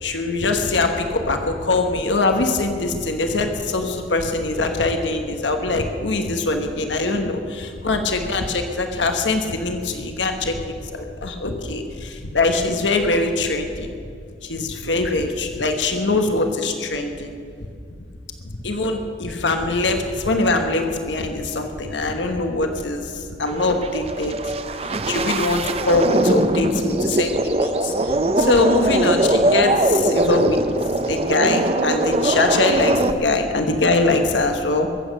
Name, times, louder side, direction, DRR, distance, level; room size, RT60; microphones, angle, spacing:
voice 1, 0.0-10.6 10.9-13.9 14.4-17.3 18.6-24.5 24.8-30.6 31.0-34.9, left 2 dB, 90° left, 5 dB, 1.3 m, -22 dB
sound 1, 23.5-33.1, right 2 dB, 35° right, 0.6 m, -21 dB
22.0 x 8.4 x 6.5 m, 2.4 s
head